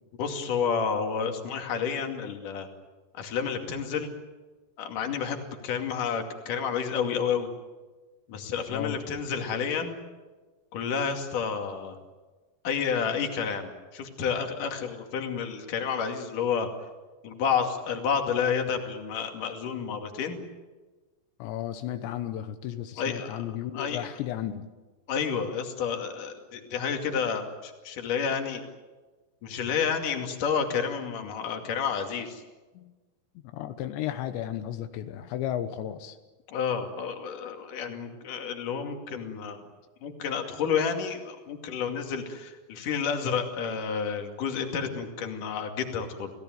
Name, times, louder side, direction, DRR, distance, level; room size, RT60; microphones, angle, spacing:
voice 1, 0.2-2.7 3.1-4.1 4.8-7.5 8.3-9.9 10.7-12.0 12.6-16.7 17.2-20.4 23.0-23.4 23.7-24.0 25.1-28.6 29.4-32.4 36.5-39.6 40.0-46.3, left 6 dB, 55° left, 4 dB, 3.7 m, -30 dB
voice 2, 21.4-24.7 32.8-32.9 33.5-36.2, left 11 dB, 85° left, 9 dB, 3.3 m, -34 dB
29.5 x 17.5 x 9.3 m, 1.3 s
omnidirectional pair, 5.0 m